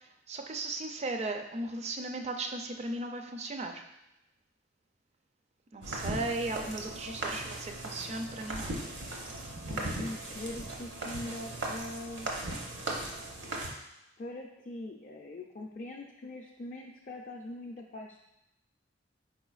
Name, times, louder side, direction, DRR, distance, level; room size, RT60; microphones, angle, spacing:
voice 1, 0.0-3.8 5.7-8.8, right 2 dB, 35° right, 5 dB, 0.4 m, -36 dB
sound 1, 5.8-13.7, right 2 dB, 70° right, 0.9 m, -38 dB
voice 2, 7.1-7.5 9.7-12.3 14.2-18.2, left 1 dB, 40° left, -1 dB, 0.4 m, -42 dB
4.9 x 4.4 x 2.4 m, 0.87 s
head